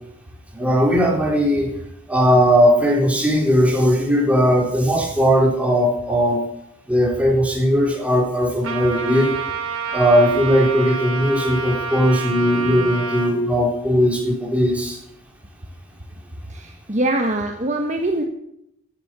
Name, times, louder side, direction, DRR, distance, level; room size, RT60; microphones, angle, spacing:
voice 1, 0.5-1.7 2.1-6.4 6.9-9.3 9.9-15.0, equal, 5° right, -1 dB, 3.9 m, -18 dB
Trumpet, 8.6-13.3, right 4 dB, 75° right, 3.9 m, -28 dB
voice 2, 16.5-18.2, right 1 dB, 35° right, 3 dB, 1.3 m, -23 dB
15.5 x 10.5 x 6.3 m, 0.77 s
head